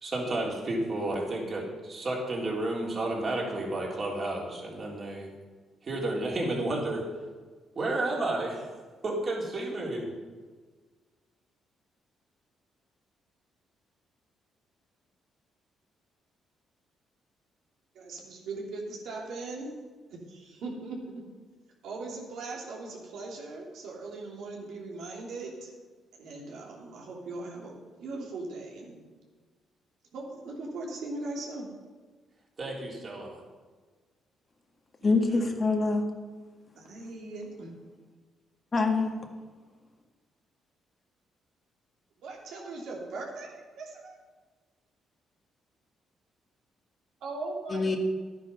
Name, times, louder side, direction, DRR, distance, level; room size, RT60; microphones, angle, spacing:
voice 1, 0.0-5.3 5.8-7.0 7.8-8.7 9.0-10.1 32.6-33.4 35.0-35.6, right 2 dB, 45° right, -2 dB, 3.5 m, -32 dB
voice 2, 17.9-19.7 20.1-21.3 21.8-25.7 26.1-29.0 30.1-31.7 36.8-37.7 42.2-44.2 47.2-47.8, right 3 dB, 80° right, -2 dB, 2.9 m, -39 dB
voice 3, 35.0-36.0 38.7-39.1 47.7-48.0, left 3 dB, 35° left, 3 dB, 1.6 m, -25 dB
11.0 x 9.6 x 5.5 m, 1.4 s
cardioid pair, 90°, 0 cm